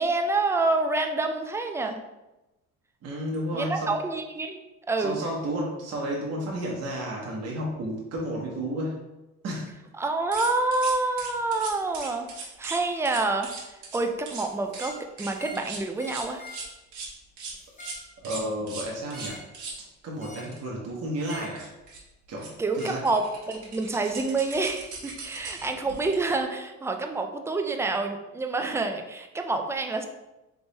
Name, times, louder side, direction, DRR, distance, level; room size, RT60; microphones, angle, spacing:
voice 1, 0.0-2.0 3.5-4.6 4.9-5.2 10.0-13.5 13.9-16.4 22.6-30.0, right 3 dB, 10° right, 5 dB, 0.4 m, -27 dB
voice 2, 3.0-3.9 5.0-9.0 9.4-9.7 18.2-19.4 20.0-21.7 22.3-23.0, right 1 dB, 60° right, -3 dB, 1.0 m, -32 dB
sound 1, 10.3-12.8 13.1-14.0 14.3-14.5 14.7-14.9 15.2-17.1 17.4-17.5 17.8-18.0 18.2-19.8 20.5-20.6 20.9-21.0 21.2-22.0 22.4-22.5 22.8-26.4, right 4 dB, 80° right, 1.3 m, -39 dB
sound 2, 14.7-15.0 15.4-15.7 16.0-16.7 17.6-18.1 19.1-19.5 20.2-20.6 21.2-21.6 22.8-23.0, left 2 dB, 25° left, 1.4 m, -44 dB
3.5 x 3.5 x 4.0 m, 1.0 s
cardioid pair, 115°, 29 cm